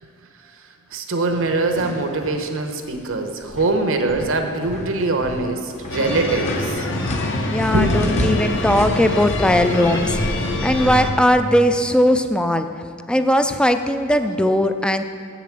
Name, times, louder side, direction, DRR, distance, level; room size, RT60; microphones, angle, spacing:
voice 1, 0.9-6.9 7.5-8.3, right 2 dB, 65° right, 5 dB, 1.0 m, -23 dB
sound 1, 1.3-2.4 2.8-3.2 3.5-10.0, left 1 dB, 30° left, 0.9 m, -31 dB
sound 2, 5.9-11.1, left 1 dB, 60° left, 1.0 m, -25 dB
voice 2, 7.5-10.2 10.6-12.7 13.1-15.0, left 1 dB, 5° left, 8 dB, 0.4 m, -18 dB
7.7 x 7.1 x 7.5 m, 2.3 s
head